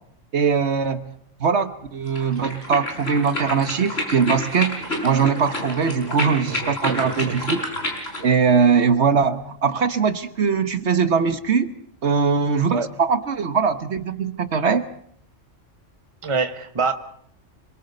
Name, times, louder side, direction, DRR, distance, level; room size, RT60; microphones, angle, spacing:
voice 1, 0.3-1.1 1.4-7.6 8.2-11.7 12.0-14.8, right 5 dB, 65° right, 11 dB, 1.4 m, -21 dB
sound 1, 2.1-8.3, left 1 dB, 55° left, 5.6 m, -29 dB
voice 2, 6.5-7.4 12.7-12.9 16.2-16.9, right 4 dB, 25° right, 9 dB, 1.2 m, -26 dB
26.0 x 23.0 x 5.4 m, 0.66 s
omnidirectional pair, 1.3 m